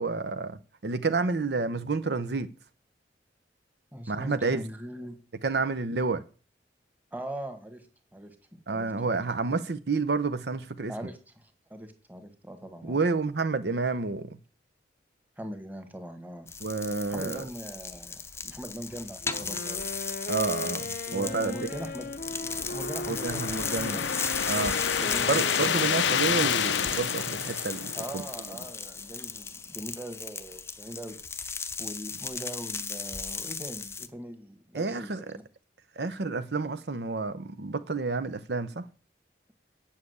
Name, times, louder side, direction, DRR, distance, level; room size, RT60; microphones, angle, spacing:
voice 1, 0.0-2.5 4.1-4.6 5.4-6.2 8.7-10.9 12.8-14.4 16.6-17.4 20.3-21.7 23.1-24.0 24.5-24.8 25.3-28.2 34.7-35.4 36.0-38.8, right 3 dB, 60° right, 0.7 m, -29 dB
voice 2, 3.9-5.2 7.1-7.9 8.1-8.3 8.7-8.9 10.9-11.2 11.7-13.0 15.4-16.5 17.1-19.9 21.1-22.1 22.7-24.0 25.0-25.8 27.9-31.2 31.8-35.4, right 1 dB, 10° right, 1.6 m, -41 dB
sound 1, 16.5-34.1, left 5 dB, 15° left, 0.7 m, -36 dB
Wind instrument woodwind instrument, 19.2-27.1, left 2 dB, 50° left, 0.8 m, -38 dB
sound 2, 21.9-28.5, left 8 dB, 80° left, 0.6 m, -30 dB
8.5 x 7.5 x 8.0 m
head